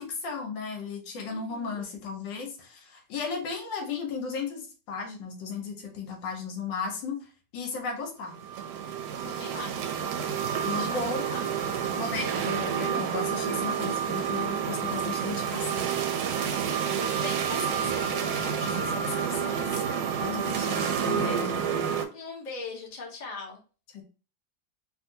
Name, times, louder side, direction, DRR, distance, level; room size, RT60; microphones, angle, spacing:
voice 1, 0.0-7.3 7.5-8.4 10.7-11.3 11.9-15.9 20.2-21.7 23.9-24.0, left 4 dB, 80° left, 3 dB, 1.5 m, -35 dB
voice 2, 1.3-1.8 9.2-10.2 10.5-11.6 16.5-19.9 22.1-23.6, left 4 dB, 35° left, -1 dB, 0.7 m, -41 dB
sound 1, 8.3-22.0, right 7 dB, 75° right, 1.0 m, -29 dB
3.5 x 2.5 x 2.7 m, 0.35 s
omnidirectional pair, 2.0 m